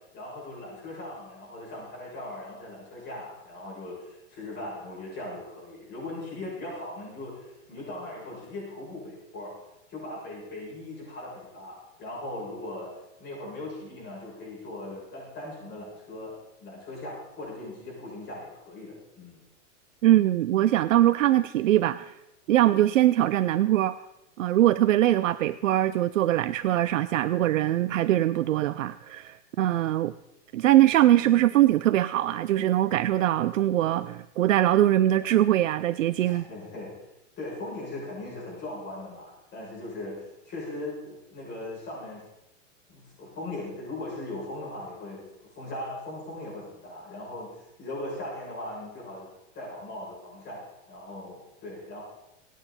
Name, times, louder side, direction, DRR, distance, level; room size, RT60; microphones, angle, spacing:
voice 1, 0.1-9.5 9.9-12.9 13.2-19.4 36.2-36.9 37.4-42.2 42.9-49.3 49.5-52.0, left 2 dB, 25° left, -5 dB, 7.0 m, -39 dB
voice 2, 20.0-22.1 22.5-24.0 24.4-30.1 30.5-36.4, right 13 dB, 85° right, 13 dB, 0.6 m, -22 dB
24.5 x 9.2 x 4.3 m, 0.91 s
hypercardioid pair, 135°, 38 cm